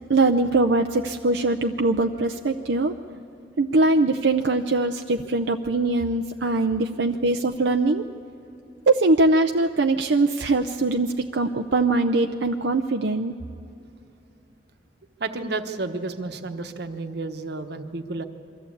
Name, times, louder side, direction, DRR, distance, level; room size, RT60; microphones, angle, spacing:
voice 1, 0.1-2.9 3.6-8.0 8.9-13.3, right 2 dB, 85° right, 5 dB, 0.6 m, -22 dB
voice 2, 15.2-18.3, right 3 dB, 65° right, 7 dB, 1.2 m, -31 dB
23.5 x 14.0 x 8.4 m, 2.9 s
head